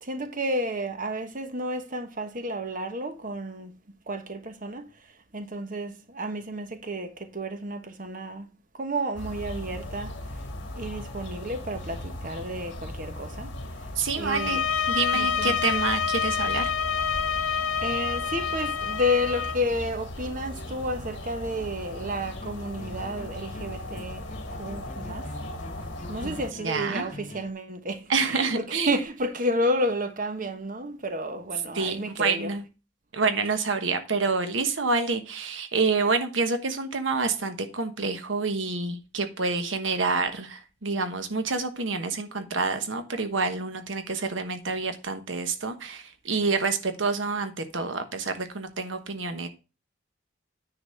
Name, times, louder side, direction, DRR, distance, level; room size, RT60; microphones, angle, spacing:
voice 1, 0.0-3.7 4.1-4.9 5.3-8.5 8.8-10.1 10.7-13.5 14.1-14.6 15.1-15.8 17.8-24.3 24.6-25.3 26.1-32.5, equal, 45° right, 1.2 m, -31 dB
sound 1, 9.1-26.5, left 1 dB, 65° left, 1.9 m, -38 dB
voice 2, 14.0-16.7 26.2-26.3 26.6-27.1 28.1-28.9 31.7-32.6 33.1-49.5, right 4 dB, 75° right, 1.2 m, -28 dB
sound 2, 14.3-19.6, left 6 dB, 85° left, 0.5 m, -27 dB
sound 3, 22.1-27.5, left 2 dB, 40° left, 0.7 m, -44 dB
9.9 x 4.1 x 6.4 m
head